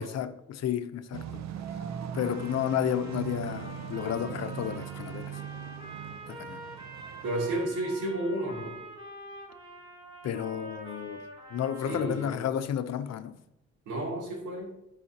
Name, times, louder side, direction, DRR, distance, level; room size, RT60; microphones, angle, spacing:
voice 1, 0.0-1.8 2.1-5.4 6.3-6.6 10.2-13.4, left 9 dB, 60° left, 0.6 m, -32 dB
sound 1, 1.1-7.7, right 8 dB, 60° right, 0.6 m, -40 dB
Trumpet, 2.1-12.5, right 1 dB, 15° right, 2.9 m, -46 dB
voice 2, 7.2-8.7 11.8-12.4 13.9-14.7, right 1 dB, 85° right, 2.8 m, -32 dB
14.0 x 4.8 x 2.8 m
cardioid pair, 90°, 30 cm